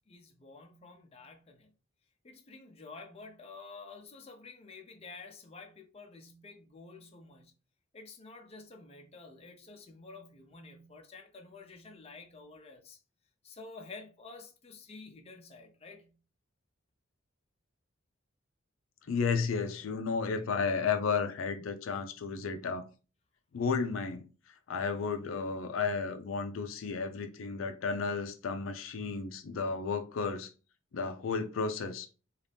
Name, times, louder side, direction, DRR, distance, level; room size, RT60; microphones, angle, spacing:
voice 1, 0.0-1.7 2.2-7.5 7.9-13.0 13.4-16.1, left 3 dB, 30° left, 0.5 m, -50 dB
voice 2, 19.1-22.8 23.5-24.3 24.7-30.5 30.9-32.1, left 5 dB, 85° left, 0.4 m, -33 dB
2.7 x 2.4 x 3.4 m
head